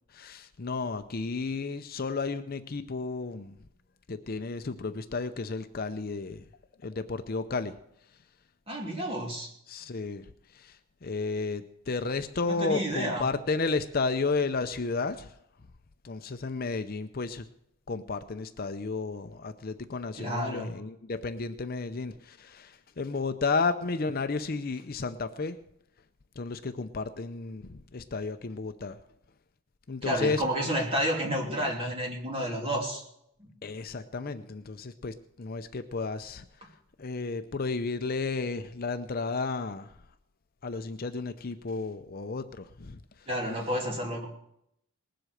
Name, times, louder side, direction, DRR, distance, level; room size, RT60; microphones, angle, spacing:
voice 1, 0.1-3.6 4.1-6.5 6.8-7.8 9.7-15.3 16.0-17.5 17.9-25.6 26.4-29.0 29.9-30.4 33.6-40.0 40.6-43.3, left 4 dB, 40° left, 9 dB, 0.6 m, -33 dB
voice 2, 8.7-9.5 12.5-13.2 20.2-20.7 30.0-33.0 33.4-33.5 43.3-44.3, equal, 25° right, 0 dB, 2.7 m, -30 dB
19.5 x 7.8 x 6.5 m, 0.76 s
head